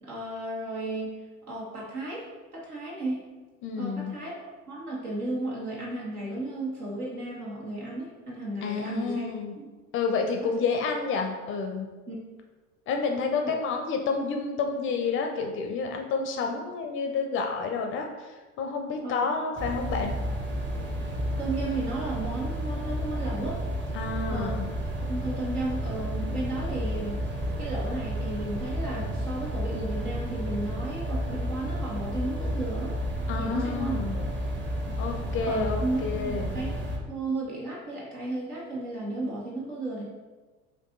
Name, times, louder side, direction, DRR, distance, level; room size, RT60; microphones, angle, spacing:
voice 1, 0.0-1.1 1.5-2.3 2.5-3.2 3.8-9.3 9.6-9.7 12.1-12.2 13.4-13.5 19.0-19.2 21.4-23.6 24.3-24.6 25.1-27.2 27.6-33.0 33.4-34.3 34.9-35.0 35.4-36.7 37.1-40.0, right 2 dB, 80° right, -5 dB, 1.4 m, -34 dB
voice 2, 3.6-4.2 8.6-9.6 9.9-11.9 12.9-20.1 23.9-24.7 33.3-34.2 35.0-36.5, left 4 dB, 30° left, 3 dB, 0.5 m, -29 dB
sound 1, 19.6-37.0, equal, 25° right, 0.8 m, -31 dB
4.5 x 2.6 x 3.8 m, 1.2 s
figure-of-eight pair, 70°, 44 cm